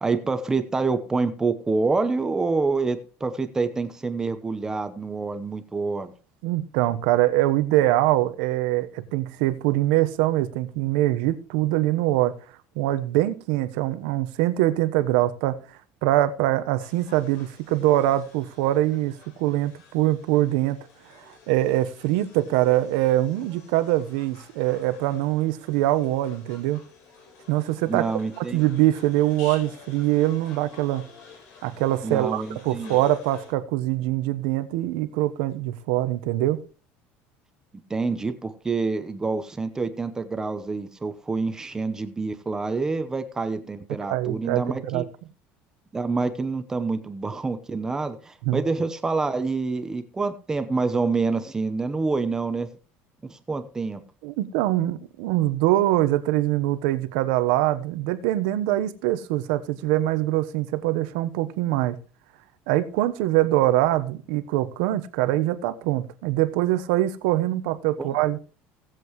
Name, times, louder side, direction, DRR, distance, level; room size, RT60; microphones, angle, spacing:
voice 1, 0.0-6.1 27.9-28.6 32.0-33.0 37.9-45.0 45.9-52.7 53.3-54.0 68.0-68.1, right 4 dB, 10° right, 0.8 m, -27 dB
voice 2, 6.4-12.4 12.7-15.6 16.0-20.8 21.3-26.8 27.5-28.1 28.4-31.1 31.6-36.6 44.1-45.0 48.4-48.6 54.2-62.0 62.7-68.4, right 15 dB, 85° right, 1.1 m, -23 dB
sound 1, 16.8-33.5, left 5 dB, 60° left, 4.1 m, -49 dB
17.5 x 7.7 x 3.2 m
cardioid pair, 160°, 5 cm